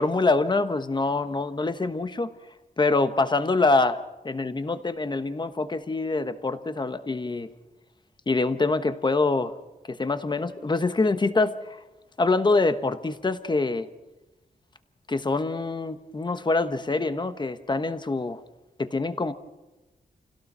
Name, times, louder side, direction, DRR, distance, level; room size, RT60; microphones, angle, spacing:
voice 1, 0.0-2.3 2.8-7.5 8.3-9.5 9.9-11.8 12.2-13.9 15.1-18.4 18.8-19.3, left 3 dB, 25° left, 10 dB, 1.1 m, -25 dB
29.0 x 17.0 x 5.6 m, 1.1 s
wide cardioid pair, 140°, 17 cm